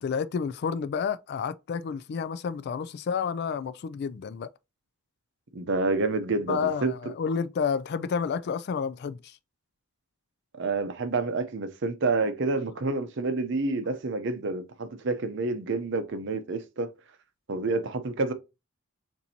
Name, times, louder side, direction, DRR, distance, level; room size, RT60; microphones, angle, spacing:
voice 1, 0.0-4.5 6.5-9.4, left 6 dB, 50° left, 0.3 m, -30 dB
voice 2, 5.5-6.9 10.6-16.9 17.5-18.3, right 3 dB, 60° right, 0.6 m, -28 dB
7.1 x 2.7 x 2.8 m
head